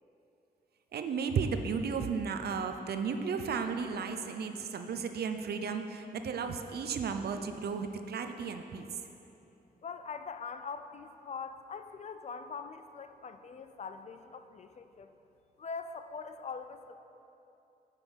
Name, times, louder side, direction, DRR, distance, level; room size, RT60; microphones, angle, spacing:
voice 1, 0.9-8.9, right 5 dB, 80° right, 7 dB, 0.6 m, -34 dB
voice 2, 9.8-15.1 15.6-16.9, left 5 dB, 45° left, 9 dB, 0.5 m, -42 dB
8.9 x 5.7 x 6.2 m, 2.9 s
wide cardioid pair, 130°, 16 cm